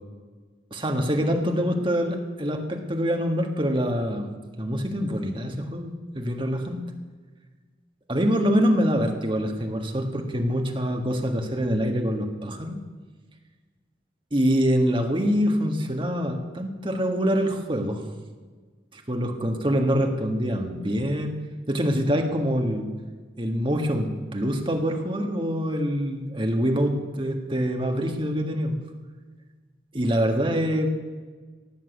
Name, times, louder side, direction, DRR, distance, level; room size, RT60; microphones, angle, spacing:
voice 1, 0.7-4.3 4.6-6.8 8.1-12.8 14.3-18.0 18.9-21.3 21.7-22.9 23.4-28.7 29.9-30.9, equal, 30° right, 4 dB, 1.7 m, -25 dB
17.5 x 7.5 x 8.3 m, 1.4 s
head